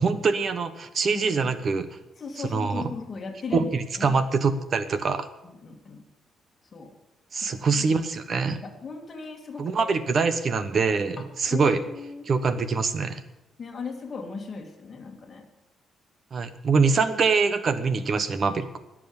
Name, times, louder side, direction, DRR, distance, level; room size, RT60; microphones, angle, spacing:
voice 1, 0.0-1.9 2.4-2.9 3.5-5.3 7.3-8.6 9.6-11.8 12.3-13.2 16.3-18.8, right 4 dB, 35° right, 12 dB, 1.1 m, -24 dB
voice 2, 1.1-1.5 2.2-3.7 4.0-4.1 5.4-6.0 6.7-6.9 7.4-8.0 8.6-10.0 11.2-11.3 11.5-12.3 13.6-15.5, left 5 dB, 30° left, 3 dB, 2.3 m, -37 dB
20.5 x 7.6 x 7.1 m, 0.98 s
cardioid pair, 175°, 0 cm